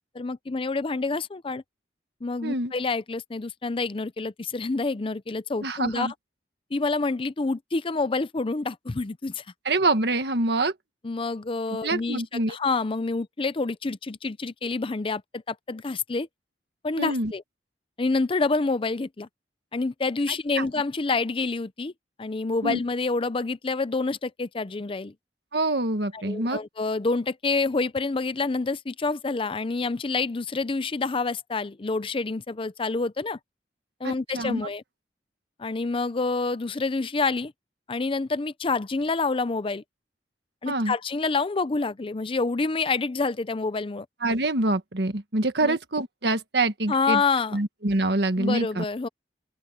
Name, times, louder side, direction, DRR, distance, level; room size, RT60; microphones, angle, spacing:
voice 1, 0.1-1.6 2.2-6.1 6.7-9.4 11.0-12.2 12.5-16.3 16.8-17.4 18.0-19.3 19.7-21.9 22.2-25.1 26.1-33.4 34.0-34.8 35.6-37.5 37.9-39.8 40.6-44.1 45.6-45.8 46.9-47.6 48.4-49.1, left 3 dB, 30° left, 0.5 m, -27 dB
voice 2, 2.4-2.7 5.6-6.1 9.7-10.7 11.7-12.6 17.0-17.3 20.6-20.7 22.6-22.8 25.5-26.6 34.0-34.6 40.7-40.9 44.2-47.2 47.5-48.8, right 2 dB, 65° right, 1.7 m, -26 dB
open air
head